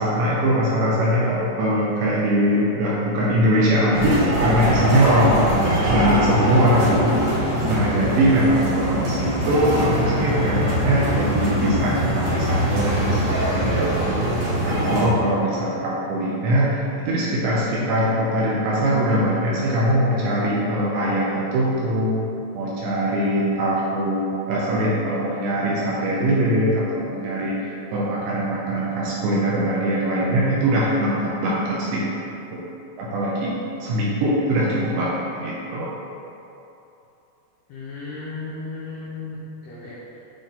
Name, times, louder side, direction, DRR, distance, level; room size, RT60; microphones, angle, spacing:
voice 1, 0.0-22.2 22.5-32.1 32.5-32.6 33.0-33.5 33.8-35.9, equal, 80° right, -6 dB, 2.7 m, -22 dB
sound 1, 3.9-15.1, right 1 dB, 60° right, 2.7 m, -22 dB
voice 2, 37.7-39.4 39.6-39.9, left 3 dB, 85° left, -7 dB, 2.2 m, -34 dB
8.8 x 3.9 x 3.7 m, 2.9 s
omnidirectional pair, 5.8 m